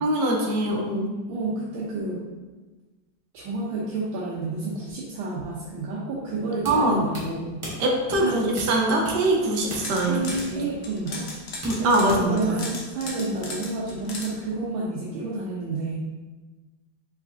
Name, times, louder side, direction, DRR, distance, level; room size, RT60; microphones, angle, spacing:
voice 1, 0.0-1.1 6.6-7.0 7.8-10.2 11.6-12.6, right 2 dB, 70° right, 0 dB, 1.3 m, -23 dB
voice 2, 1.3-2.3 3.3-7.6 8.2-8.6 10.0-16.0, right 3 dB, 85° right, -5 dB, 1.5 m, -30 dB
sound 1, 6.6-12.5, equal, 20° right, 1.0 m, -39 dB
sound 2, 9.6-10.5 10.8-14.3, left 3 dB, 55° left, 0.7 m, -36 dB
4.7 x 4.1 x 2.6 m, 1.2 s
omnidirectional pair, 2.1 m